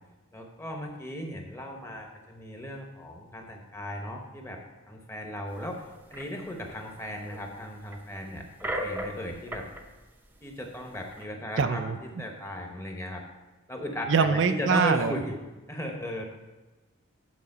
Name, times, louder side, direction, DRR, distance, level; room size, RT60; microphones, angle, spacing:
voice 1, 0.3-4.6 4.9-5.8 6.1-9.7 10.4-11.9 12.2-13.2 13.7-15.4 15.7-16.2, equal, 10° left, 2 dB, 0.9 m, -36 dB
sound 1, 5.6-5.7 6.1-7.4 7.9-9.8 10.2-10.3 10.7-11.2, equal, 10° right, 0.6 m, -37 dB
voice 2, 11.6-12.0 14.1-15.1, right 5 dB, 55° right, 8 dB, 0.4 m, -23 dB
8.3 x 4.9 x 6.5 m, 1.1 s
head